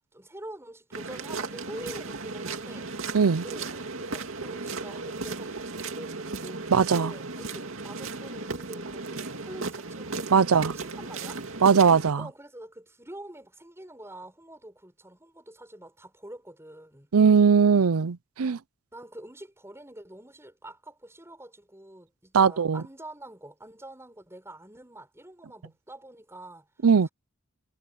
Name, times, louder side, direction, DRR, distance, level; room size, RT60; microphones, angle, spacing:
voice 1, 0.1-2.9 3.4-6.6 6.9-11.4 12.2-17.1 18.9-26.7 27.0-27.1, right 1 dB, 10° right, 7.1 m, -45 dB
sound 1, 0.9-12.1, right 3 dB, 65° right, 2.5 m, -36 dB
voice 2, 3.1-3.4 6.7-7.1 10.3-10.7 11.6-12.3 17.1-18.6 22.3-22.8 26.8-27.1, right 6 dB, 85° right, 0.6 m, -20 dB
head